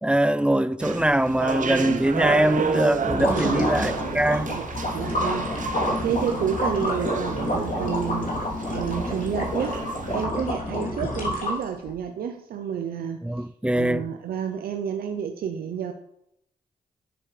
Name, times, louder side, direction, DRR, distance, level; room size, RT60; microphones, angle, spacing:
voice 1, 0.0-4.5 13.2-14.1, right 1 dB, 5° right, 0.4 m, -22 dB
sound 1, 0.8-10.3, right 5 dB, 60° right, 0.9 m, -31 dB
sound 2, 2.9-11.9, left 1 dB, 60° left, 3.1 m, -28 dB
voice 2, 3.3-3.7 4.5-4.7 4.9-5.5 6.0-9.8 10.1-13.5 13.7-15.9, right 8 dB, 80° right, 0.6 m, -30 dB
9.2 x 7.4 x 3.3 m
supercardioid pair, 45°, 15 cm